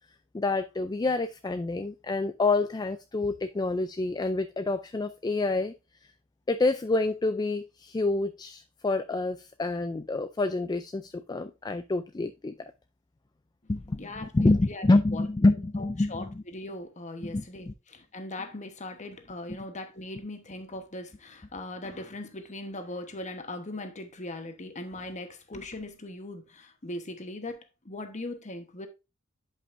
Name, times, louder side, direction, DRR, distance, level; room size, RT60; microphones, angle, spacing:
voice 1, 0.3-5.7 6.5-12.7 13.7-16.4 17.2-17.7, left 2 dB, 20° left, 0.3 m, -27 dB
voice 2, 14.0-14.9 15.1-15.2 15.8-28.9, left 2 dB, 35° left, 1.1 m, -40 dB
10.5 x 5.5 x 2.6 m
head